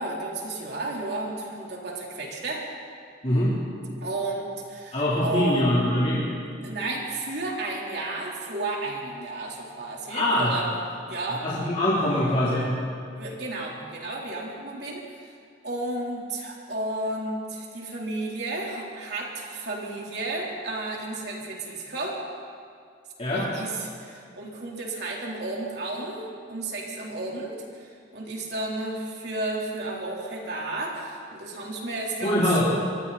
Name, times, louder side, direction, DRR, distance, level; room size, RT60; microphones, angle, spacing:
voice 1, 0.0-2.7 4.0-5.7 6.6-10.7 11.1-11.4 13.1-15.3 15.6-22.2 23.2-32.6, right 2 dB, 55° right, -3 dB, 3.9 m, -32 dB
voice 2, 4.9-6.2 10.1-10.5 11.4-12.7 23.2-23.4 32.2-32.6, left 1 dB, 35° left, -9 dB, 3.8 m, -23 dB
27.0 x 23.0 x 4.3 m, 2.3 s
head